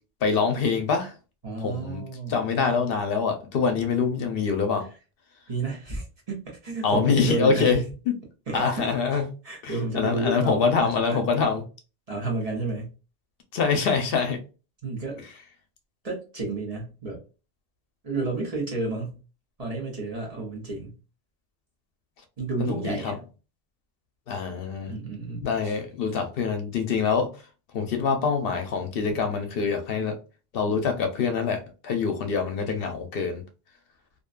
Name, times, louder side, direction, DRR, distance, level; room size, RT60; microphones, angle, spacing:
voice 1, 0.2-1.1 1.6-2.0 2.3-4.9 6.8-8.1 8.5-9.3 9.6-11.6 13.5-14.4 22.6-23.1 24.3-24.9 25.4-27.3 27.7-30.2 30.5-33.4, left 5 dB, 70° left, 0.7 m, -25 dB
voice 2, 1.4-2.5 3.7-3.9 5.5-7.9 8.5-11.3 12.1-12.9 14.8-15.2 16.0-17.2 18.0-19.2 19.6-21.0 22.4-23.2 24.9-25.8 29.1-29.2, right 3 dB, 40° right, 0.8 m, -31 dB
2.6 x 2.1 x 2.4 m
omnidirectional pair, 1.0 m